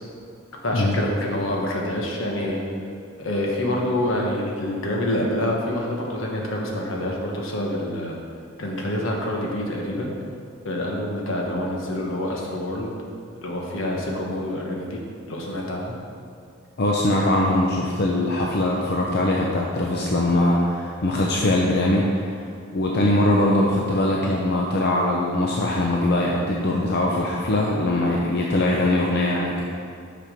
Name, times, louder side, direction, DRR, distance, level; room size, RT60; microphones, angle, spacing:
voice 1, 0.6-2.6 3.2-8.2 8.6-10.1 10.6-12.9 13.4-15.0 15.3-15.9, left 1 dB, 75° left, -1 dB, 1.3 m, -26 dB
voice 2, 16.8-22.4 22.7-29.6, left 1 dB, 55° left, -2 dB, 0.6 m, -21 dB
6.0 x 5.9 x 5.2 m, 2.3 s
head